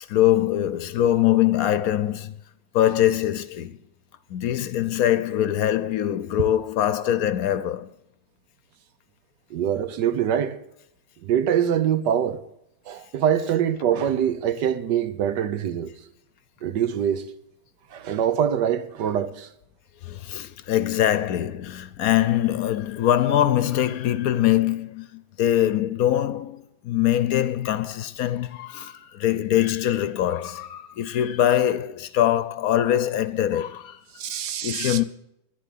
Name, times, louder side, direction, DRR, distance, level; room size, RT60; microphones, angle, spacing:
voice 1, 0.0-2.3 2.7-3.8 4.3-7.9 20.0-34.0 34.6-35.0, left 12 dB, 65° left, 1.0 m, -23 dB
voice 2, 9.5-10.6 11.2-12.4 12.9-15.9 16.6-17.2 17.9-19.5 34.2-35.0, right 9 dB, 85° right, 1.5 m, -24 dB
11.0 x 10.5 x 8.3 m
omnidirectional pair, 1.8 m